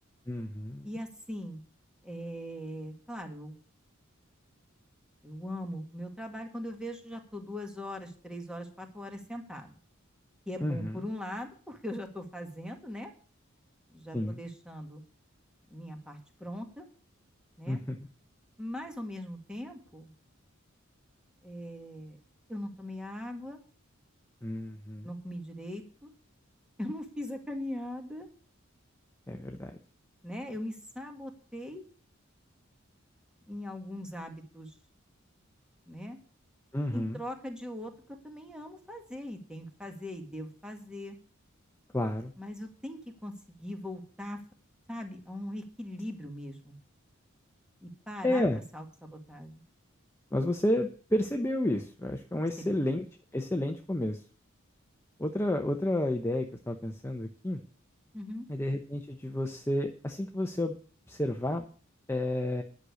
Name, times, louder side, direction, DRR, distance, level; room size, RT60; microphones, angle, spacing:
voice 1, 0.3-0.9 10.6-11.0 14.1-14.4 17.7-18.0 24.4-25.1 29.3-29.8 36.7-37.2 41.9-42.3 48.2-48.6 50.3-53.0 53.3-54.2 55.2-57.6 58.5-60.8 61.1-61.7 62.1-62.6, left 1 dB, 10° left, 4 dB, 0.8 m, -31 dB
voice 2, 0.8-1.6 2.0-3.6 5.2-9.7 10.5-13.1 13.9-15.0 15.7-16.9 17.6-17.8 18.6-20.1 21.4-22.2 22.5-23.6 25.0-26.1 26.8-28.3 30.2-31.8 33.5-34.7 35.9-36.2 36.9-41.2 42.4-44.4 44.9-46.8 47.8-48.4 48.7-49.6 52.6-52.7 58.1-58.5, left 1 dB, 5° right, 4 dB, 2.0 m, -40 dB
11.0 x 6.5 x 8.3 m, 0.42 s
head